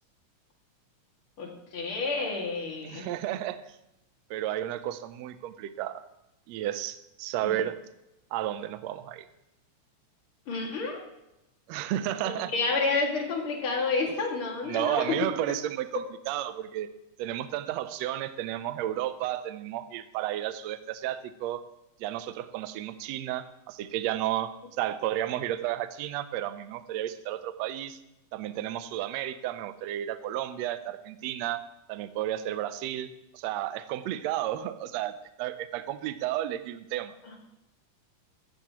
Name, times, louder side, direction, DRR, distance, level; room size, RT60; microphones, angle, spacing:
voice 1, 1.4-3.1 7.4-7.6 10.5-11.0 12.2-15.2 37.2-37.3, left 3 dB, 45° left, 0 dB, 2.8 m, -30 dB
voice 2, 2.8-3.7 4.3-6.0 6.5-7.8 8.3-9.3 11.7-12.5 14.7-16.9 17.2-21.6 22.0-24.5 24.8-28.0 28.3-37.2, right 12 dB, 80° right, 11 dB, 1.6 m, -32 dB
15.0 x 12.5 x 3.0 m, 0.89 s
omnidirectional pair, 3.6 m